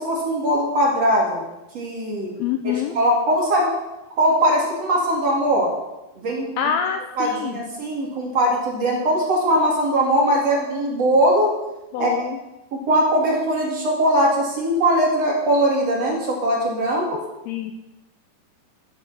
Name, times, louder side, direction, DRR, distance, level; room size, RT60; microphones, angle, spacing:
voice 1, 0.0-1.4 1.7-2.3 2.6-3.7 4.2-5.7 6.1-6.5 7.2-11.5 12.0-12.1 12.7-17.2, right 1 dB, 45° right, -2 dB, 2.8 m, -20 dB
voice 2, 2.4-3.0 6.6-7.7 11.9-12.4 17.5-17.7, left 8 dB, 80° left, 6 dB, 2.3 m, -26 dB
14.0 x 7.5 x 6.9 m, 0.99 s
omnidirectional pair, 5.0 m